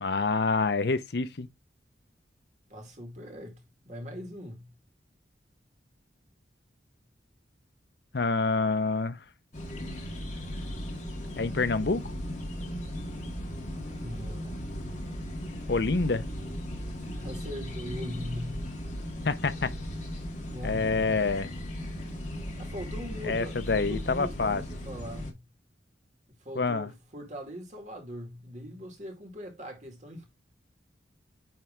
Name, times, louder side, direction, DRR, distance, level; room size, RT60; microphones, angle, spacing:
voice 1, 0.0-1.5 8.1-9.2 11.4-12.1 15.7-16.3 19.2-19.7 20.6-21.5 23.2-24.6 26.6-26.9, left 4 dB, 60° left, 0.7 m, -27 dB
voice 2, 2.7-4.7 14.0-14.6 17.1-18.7 20.4-21.3 22.6-25.4 26.4-30.3, equal, 40° right, 2.0 m, -41 dB
sound 1, 9.5-25.3, equal, 40° left, 1.8 m, -37 dB
8.9 x 3.2 x 3.7 m
head